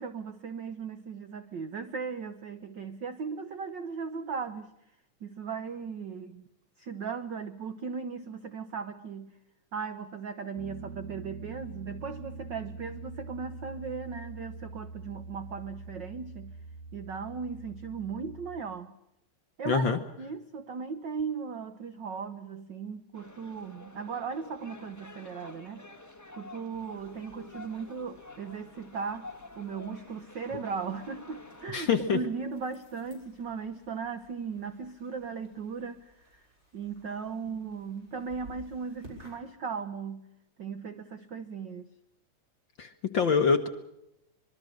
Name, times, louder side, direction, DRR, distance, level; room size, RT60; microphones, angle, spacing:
voice 1, 0.0-4.7 5.2-6.4 6.8-9.3 9.7-16.5 16.9-18.9 19.6-19.9 20.2-25.9 26.3-36.5 36.7-40.3 40.6-41.9, right 5 dB, 80° right, 10 dB, 1.0 m, -37 dB
Piano, 10.6-18.6, right 3 dB, 55° right, 2.6 m, -44 dB
voice 2, 19.7-20.0 31.7-32.2 42.8-43.7, left 5 dB, 55° left, 7 dB, 1.4 m, -25 dB
sound 1, 23.1-31.7, left 3 dB, 20° left, 0.4 m, -49 dB
sound 2, 26.7-39.4, equal, 20° right, 7.0 m, -57 dB
25.0 x 22.5 x 6.4 m, 0.84 s
omnidirectional pair, 3.5 m